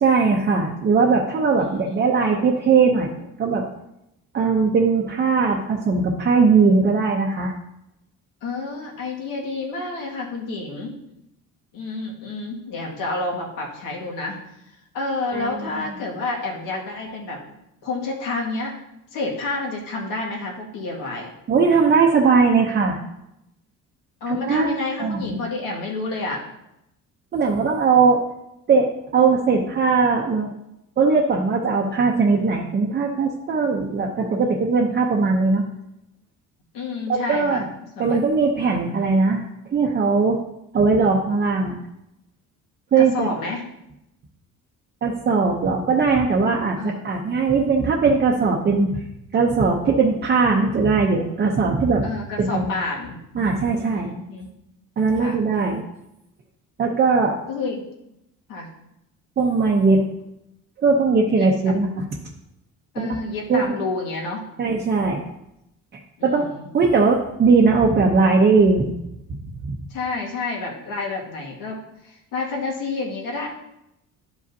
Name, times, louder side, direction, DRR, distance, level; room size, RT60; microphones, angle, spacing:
voice 1, 0.0-3.1 3.4-3.6 4.3-7.5 15.3-15.7 21.5-23.0 24.3-25.4 27.3-28.2 28.7-30.5 31.0-35.6 37.1-37.6 38.0-40.4 40.7-41.8 42.9-43.3 45.0-49.0 49.3-52.0 52.4-52.7 53.3-54.1 55.0-55.8 56.8-57.3 59.4-60.0 60.8-62.0 63.0-63.2 63.5-63.8 64.6-65.2 65.9-66.5 66.7-68.9 69.7-69.8, right 4 dB, 30° right, -1 dB, 0.7 m, -19 dB
voice 2, 1.6-2.0 8.4-10.9 11.7-14.4 14.7-17.4 17.8-18.7 19.1-21.3 24.2-26.4 36.7-37.7 38.0-38.2 38.7-39.1 43.0-43.6 46.8-47.1 52.0-53.2 53.8-54.5 55.2-55.4 57.5-57.8 58.5-58.7 61.4-61.5 62.9-64.4 66.2-66.7 69.9-73.5, left 3 dB, 80° left, -2 dB, 2.0 m, -29 dB
11.5 x 5.1 x 2.7 m, 0.85 s
cardioid pair, 140°, 33 cm